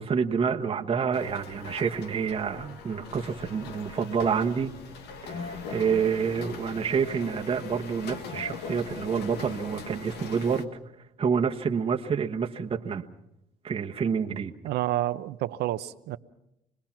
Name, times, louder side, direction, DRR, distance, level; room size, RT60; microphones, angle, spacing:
voice 1, 0.0-4.7 5.2-10.7 11.2-13.0 13.6-14.5, right 6 dB, 35° right, 2 dB, 1.2 m, -28 dB
Printer Distant A, 1.1-10.6, left 5 dB, 80° left, 1.5 m, -41 dB
voice 2, 14.6-16.2, right 14 dB, 75° right, 13 dB, 0.8 m, -29 dB
27.0 x 20.0 x 6.0 m, 0.84 s
cardioid pair, 110°, 17 cm